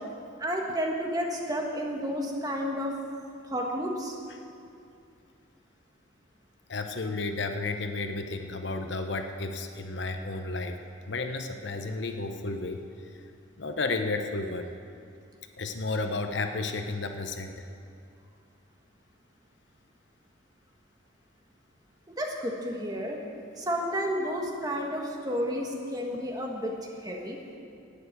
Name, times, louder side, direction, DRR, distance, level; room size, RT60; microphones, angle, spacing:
voice 1, 0.4-2.9 3.5-4.1 22.2-23.2 23.6-26.7 27.0-27.4, equal, 20° right, 0 dB, 1.4 m, -31 dB
voice 2, 6.7-10.8 11.1-12.8 13.6-14.7 15.6-17.5, left 3 dB, 60° left, 6 dB, 0.8 m, -32 dB
11.5 x 8.9 x 8.3 m, 2.5 s
head